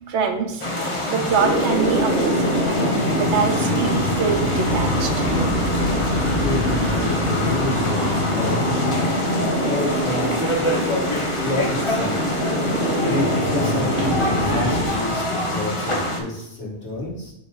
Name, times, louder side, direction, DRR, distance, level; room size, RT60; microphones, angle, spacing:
voice 1, 0.0-2.8 3.2-5.3, right 6 dB, 75° right, 5 dB, 1.1 m, -25 dB
sound 1, 0.6-16.2, left 1 dB, 30° left, 0.9 m, -26 dB
sound 2, 1.4-14.9, equal, 55° left, 1.4 m, -23 dB
voice 2, 6.1-8.1 8.3-9.0 9.3-12.2 13.0-17.3, left 2 dB, 75° left, -5 dB, 2.2 m, -29 dB
6.8 x 3.1 x 4.9 m, 0.81 s
omnidirectional pair, 1.2 m